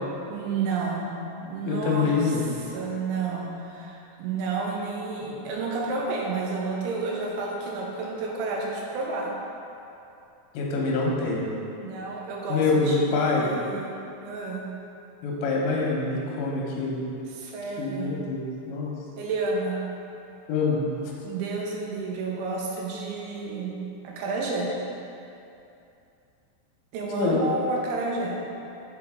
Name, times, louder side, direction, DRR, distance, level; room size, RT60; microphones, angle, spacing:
voice 1, 0.3-1.1 1.4-9.3 11.8-13.9 14.2-14.6 17.4-18.2 19.2-19.8 21.2-23.8 24.0-24.7 26.9-28.4, right 3 dB, 90° right, -2 dB, 3.1 m, -31 dB
voice 2, 1.7-2.5 10.5-11.5 12.5-13.5 15.2-17.0 17.8-18.9 20.5-21.1 27.1-27.4, left 3 dB, 80° left, -2 dB, 3.1 m, -25 dB
6.8 x 5.1 x 3.6 m, 2.7 s
omnidirectional pair, 5.4 m